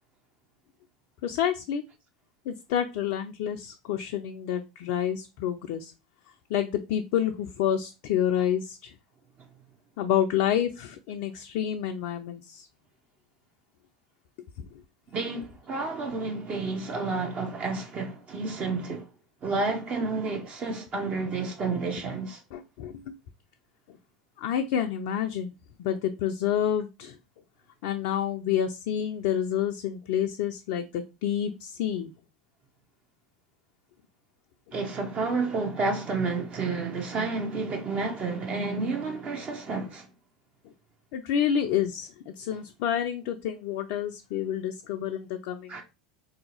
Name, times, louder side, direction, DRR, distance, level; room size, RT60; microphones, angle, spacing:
voice 1, 1.2-1.8 2.5-5.9 6.5-8.9 10.0-12.7 22.5-23.1 24.4-25.5 25.8-27.2 27.8-32.1 41.1-45.8, left 9 dB, 60° left, 0.4 m, -28 dB
voice 2, 15.1-19.1 19.4-22.4 34.7-40.1 45.7-45.8, right 3 dB, 35° right, 0.7 m, -30 dB
3.7 x 2.7 x 2.8 m
hypercardioid pair, 80°, 4 cm